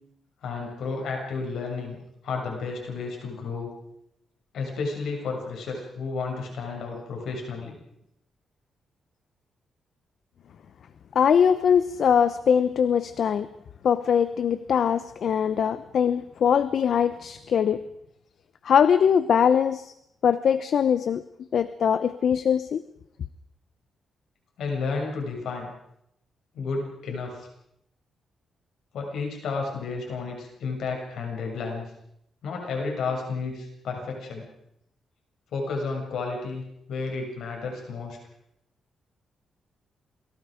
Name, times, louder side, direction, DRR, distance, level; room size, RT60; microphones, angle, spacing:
voice 1, 0.4-2.0 2.2-3.7 4.5-7.8 24.6-25.7 26.5-27.5 28.9-31.9 32.4-34.4 35.5-36.6 36.9-38.2, left 4 dB, 75° left, 1 dB, 7.1 m, -32 dB
voice 2, 11.1-13.5 13.8-17.8 18.6-19.9 20.2-21.2 21.5-22.8, left 7 dB, 55° left, 13 dB, 0.9 m, -22 dB
29.0 x 22.5 x 5.1 m, 0.78 s
wide cardioid pair, 150°, 0 cm